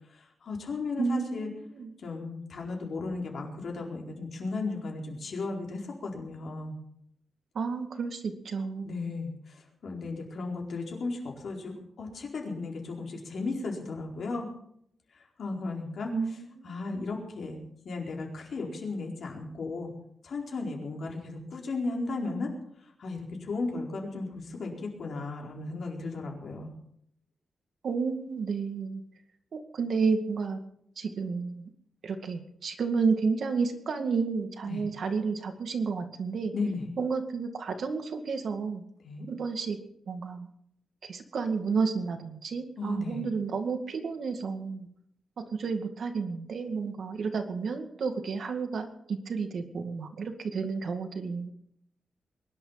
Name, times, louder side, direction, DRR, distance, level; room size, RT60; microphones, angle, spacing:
voice 1, 0.1-1.5 2.0-6.8 8.8-14.5 15.4-16.1 16.6-17.6 17.8-19.9 20.2-22.5 23.0-26.7 34.7-34.8 36.5-36.9 39.0-39.3 42.8-43.3, left 3 dB, 60° left, 0 dB, 4.5 m, -35 dB
voice 2, 1.0-1.9 7.5-9.0 16.1-16.7 27.8-29.0 29.5-30.6 31.0-31.7 32.0-36.5 37.0-38.8 39.3-39.8 40.1-40.5 41.0-44.9 45.4-51.5, right 5 dB, 60° right, 6 dB, 2.1 m, -31 dB
22.5 x 11.0 x 5.8 m, 0.71 s
wide cardioid pair, 160°, 0 cm